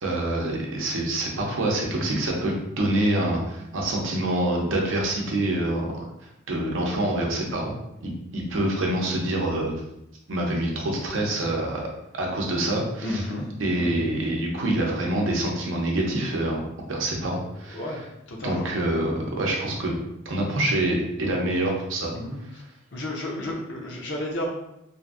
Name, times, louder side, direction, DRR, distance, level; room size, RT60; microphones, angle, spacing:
voice 1, 0.0-6.0 6.5-7.7 8.0-9.7 10.3-11.8 12.1-13.3 13.6-16.6 16.9-17.8 18.4-19.9 20.2-22.1, right 1 dB, 80° right, -1 dB, 0.6 m, -26 dB
voice 2, 13.0-13.5 13.8-14.1 17.7-18.0 18.3-18.7 22.1-22.4 22.9-24.5, left 1 dB, 65° left, 0 dB, 0.7 m, -31 dB
2.7 x 2.5 x 2.4 m, 0.84 s
head